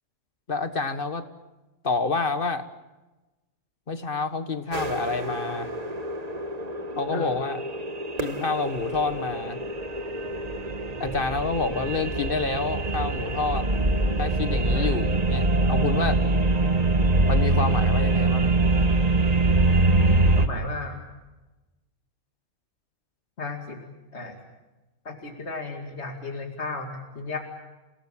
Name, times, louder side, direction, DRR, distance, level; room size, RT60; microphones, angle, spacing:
voice 1, 0.5-1.2 1.8-2.6 3.9-5.7 7.0-7.6 8.2-9.6 11.0-13.7 14.2-16.2 17.3-18.5, left 4 dB, 45° left, 10 dB, 1.7 m, -28 dB
sound 1, 4.7-20.5, right 2 dB, 35° right, 1.5 m, -24 dB
voice 2, 20.4-21.0 23.4-23.8 24.1-24.4 25.0-27.4, left 3 dB, 60° left, 3 dB, 2.7 m, -34 dB
29.5 x 18.5 x 8.8 m, 1.1 s
omnidirectional pair, 1.3 m